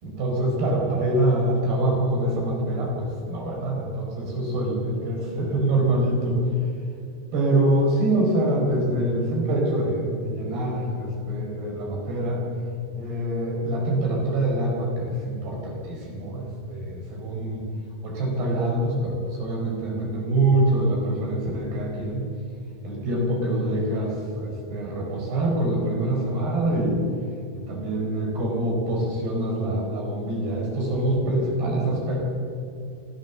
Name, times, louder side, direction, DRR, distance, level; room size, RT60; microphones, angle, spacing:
voice 1, 0.0-6.4 7.3-12.4 12.9-17.7 18.0-22.3 22.8-27.0 27.5-32.3, right 1 dB, 80° right, -1 dB, 6.5 m, -25 dB
25.0 x 15.0 x 7.1 m, 2.5 s
omnidirectional pair, 4.6 m